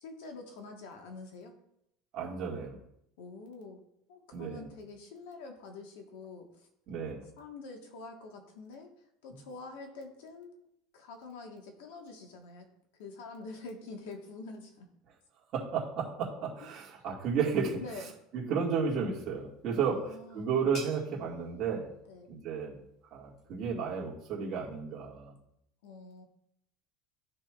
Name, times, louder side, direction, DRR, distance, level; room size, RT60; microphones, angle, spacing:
voice 1, 0.0-1.6 3.2-3.8 4.1-6.7 7.4-8.9 9.2-10.5 10.9-14.9 16.6-16.7 17.8-18.2 19.9-20.5 22.1-22.3 25.8-26.2, left 3 dB, 90° left, 3 dB, 1.3 m, -46 dB
voice 2, 2.1-2.8 4.3-4.6 6.9-7.2 15.5-17.8 18.3-21.9 22.3-22.8 23.1-25.3, right 6 dB, 35° right, -4 dB, 1.9 m, -33 dB
sound 1, 19.4-24.8, equal, 40° left, 1.4 m, -53 dB
13.0 x 4.4 x 2.4 m, 0.77 s
cardioid pair, 170°, 0 cm